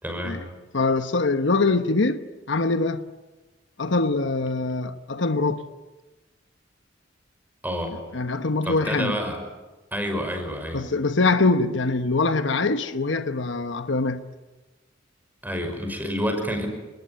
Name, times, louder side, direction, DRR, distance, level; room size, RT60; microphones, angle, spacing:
voice 1, 0.0-0.4 7.6-8.0 8.6-9.4 9.9-10.8 15.4-16.7, equal, 10° right, 5.7 m, -28 dB
voice 2, 0.7-3.0 3.8-5.6 8.1-9.2 10.7-14.3, left 3 dB, 65° left, 1.1 m, -23 dB
29.5 x 20.0 x 9.4 m
head